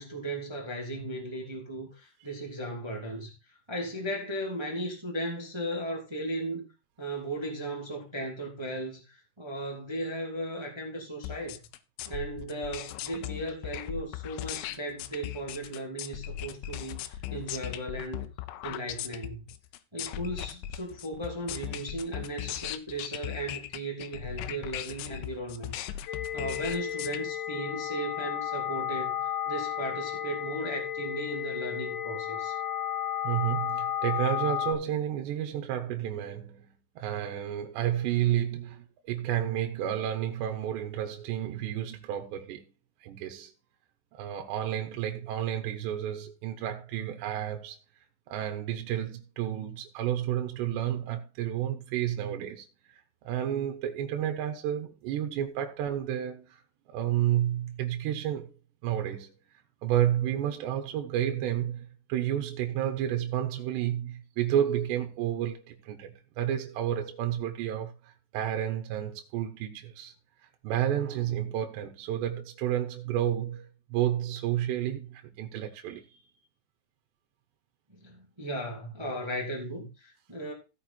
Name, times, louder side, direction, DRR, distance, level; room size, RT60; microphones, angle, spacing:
voice 1, 0.0-3.3 3.7-6.6 7.0-11.6 12.0-18.3 18.6-19.5 19.9-32.5 78.0-80.5, right 1 dB, 10° right, 1.1 m, -36 dB
sound 1, 11.2-27.2, left 13 dB, 80° left, 3.2 m, -38 dB
sound 2, 26.1-34.7, left 10 dB, 65° left, 2.8 m, -33 dB
voice 2, 33.2-36.7 37.0-42.7 43.0-43.5 44.1-47.8 48.3-53.0 53.2-56.6 56.9-58.5 58.8-59.3 59.8-70.1 70.6-76.2, right 11 dB, 70° right, 3.2 m, -31 dB
16.0 x 5.6 x 4.4 m
omnidirectional pair, 5.5 m